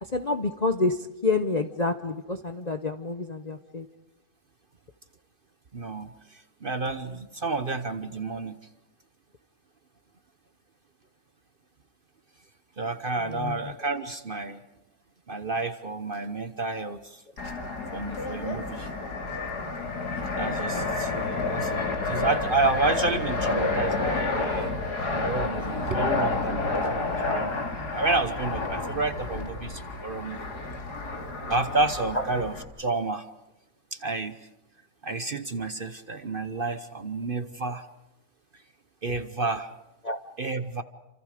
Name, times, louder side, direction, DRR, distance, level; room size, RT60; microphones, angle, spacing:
voice 1, 0.0-3.9 13.2-13.9 26.0-26.1 32.1-32.2 40.0-40.2, left 3 dB, 35° left, 7 dB, 0.8 m, -28 dB
voice 2, 5.7-8.6 12.8-14.6 15.3-17.2 17.9-18.9 20.4-21.1 21.5-21.7 22.0-24.7 25.1-27.6 27.9-30.4 31.5-33.3 33.9-34.4 35.0-37.8 39.0-39.7 40.4-40.8, right 3 dB, 40° right, 10 dB, 0.9 m, -30 dB
Fixed-wing aircraft airplane, 17.4-32.6, left 3 dB, 80° left, 3.1 m, -30 dB
28.5 x 26.5 x 5.1 m, 0.97 s
omnidirectional pair, 1.7 m